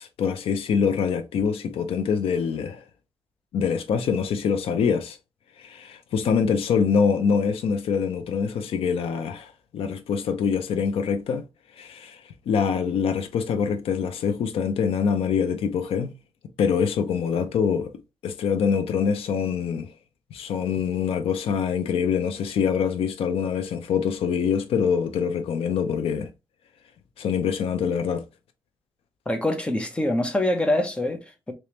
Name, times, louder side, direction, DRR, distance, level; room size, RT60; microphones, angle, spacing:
voice 1, 0.0-2.8 3.5-5.2 5.6-11.4 11.8-12.2 12.5-16.1 16.6-17.9 18.2-19.9 20.3-26.3 27.2-28.3, left 6 dB, 80° left, 0.5 m, -24 dB
voice 2, 29.3-31.5, left 1 dB, 10° left, 0.6 m, -25 dB
3.4 x 3.0 x 2.8 m
wide cardioid pair, 165°, 10 cm